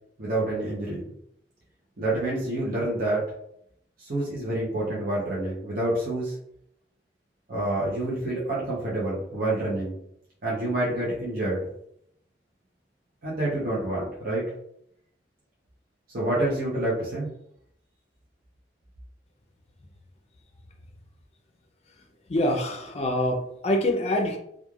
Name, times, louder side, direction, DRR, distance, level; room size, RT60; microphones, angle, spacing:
voice 1, 0.2-1.1 2.0-3.3 4.0-6.3 7.5-10.0 10.4-11.7 13.2-14.5 16.1-17.3, right 1 dB, 55° right, -7 dB, 0.7 m, -28 dB
voice 2, 22.3-24.4, left 1 dB, 35° left, 3 dB, 0.5 m, -25 dB
3.1 x 2.4 x 2.3 m, 0.75 s
head